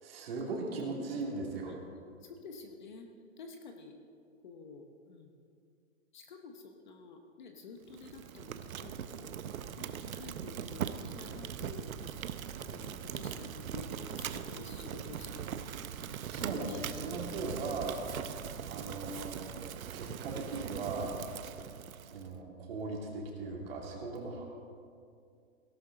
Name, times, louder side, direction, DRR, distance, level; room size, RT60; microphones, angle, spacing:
voice 1, 0.0-1.7 16.3-18.0 18.7-19.6 19.9-21.1 22.1-24.4, right 3 dB, 45° right, -1 dB, 2.6 m, -38 dB
voice 2, 2.2-3.1 3.4-3.9 4.4-5.3 6.1-9.4 9.8-15.7 16.3-17.3 18.4-18.6 21.1-21.3, left 4 dB, 35° left, 4 dB, 0.9 m, -50 dB
Fire, 7.9-22.3, right 9 dB, 80° right, 0.8 m, -41 dB
sound 1, 11.2-19.5, right 1 dB, ahead, 0.6 m, -55 dB
17.0 x 12.0 x 3.8 m, 2.3 s
hypercardioid pair, 170°, 41 cm